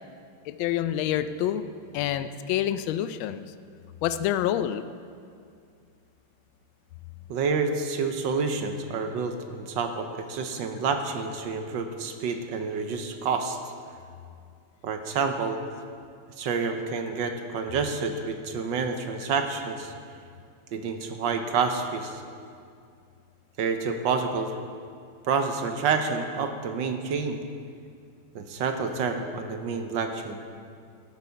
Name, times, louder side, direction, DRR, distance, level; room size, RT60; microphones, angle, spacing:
voice 1, 0.5-1.6 1.9-3.4 4.0-4.8, left 11 dB, 75° left, 12 dB, 1.3 m, -27 dB
voice 2, 7.3-13.6 14.8-15.6 16.4-19.9 20.7-22.2 23.6-24.5 25.3-27.4 28.3-30.4, right 5 dB, 65° right, 6 dB, 1.4 m, -28 dB
13.5 x 8.1 x 5.7 m, 2.3 s
omnidirectional pair, 2.4 m